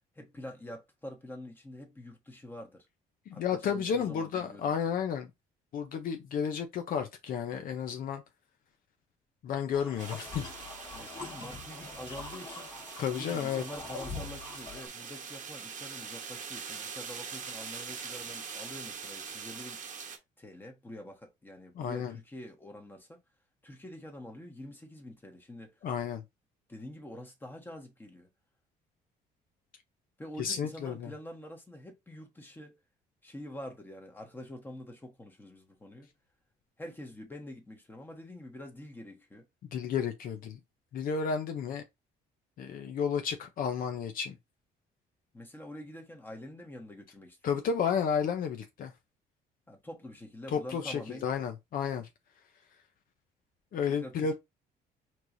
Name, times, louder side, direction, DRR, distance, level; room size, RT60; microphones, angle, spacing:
voice 1, 0.1-2.9 3.3-4.7 10.9-12.7 13.1-19.8 20.4-23.2 23.6-25.8 26.7-28.3 30.2-32.8 33.2-36.1 36.8-39.5 45.3-47.5 49.7-51.3 53.9-54.3, left 1 dB, 10° left, 1.3 m, -46 dB
voice 2, 3.3-5.3 5.7-8.2 9.4-10.4 13.0-13.6 21.8-22.1 25.8-26.2 30.4-31.1 39.7-40.6 40.9-41.8 42.6-44.4 47.4-48.9 50.5-52.1 53.7-54.3, left 7 dB, 55° left, 0.7 m, -32 dB
sound 1, 9.7-14.9, left 4 dB, 30° left, 1.6 m, -44 dB
sound 2, 10.0-20.2, right 6 dB, 45° right, 1.0 m, -43 dB
4.4 x 3.1 x 2.6 m
cardioid pair, 110°, 17 cm